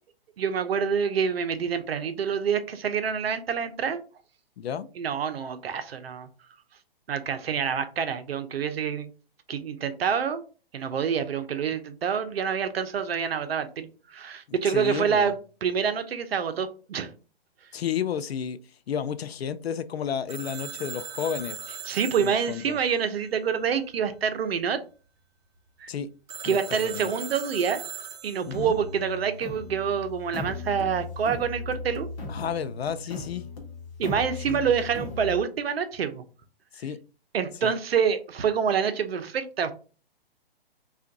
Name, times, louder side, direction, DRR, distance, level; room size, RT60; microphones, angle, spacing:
voice 1, 0.4-4.0 5.0-6.3 7.1-9.1 9.5-10.4 10.7-15.4 15.6-17.1 21.9-24.8 25.8-25.9 26.4-27.8 28.2-32.1 34.0-36.2 37.3-39.7, right 7 dB, 75° right, 0.8 m, -27 dB
voice 2, 4.6-4.9 14.5-15.3 17.7-18.6 18.9-21.6 22.2-22.8 25.9-26.1 26.4-27.1 28.5-28.7 32.3-33.5 34.5-34.7 36.7-37.0 37.6-37.8, left 8 dB, 80° left, 0.5 m, -32 dB
Telephone, 20.3-23.9 26.3-28.8, right 7 dB, 45° right, 0.9 m, -40 dB
sound 1, 28.5-35.4, left 3 dB, 15° left, 0.4 m, -37 dB
3.4 x 2.5 x 3.9 m
hypercardioid pair, 145°, 30 cm